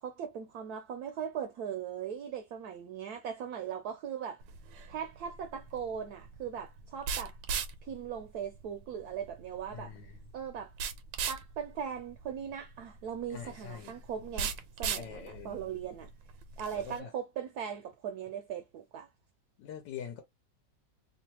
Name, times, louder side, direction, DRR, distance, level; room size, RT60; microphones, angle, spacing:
voice 1, 0.0-4.4 4.9-7.4 7.8-9.9 10.3-10.7 11.3-16.1 16.6-19.1, right 8 dB, 70° right, 0.9 m, -39 dB
sound 1, 4.4-17.0, right 6 dB, 85° right, 1.3 m, -40 dB
voice 2, 9.7-10.2 13.3-14.0 14.9-15.6 16.7-17.1 19.6-20.2, left 8 dB, 80° left, 1.3 m, -44 dB
3.1 x 2.3 x 2.8 m
omnidirectional pair, 2.0 m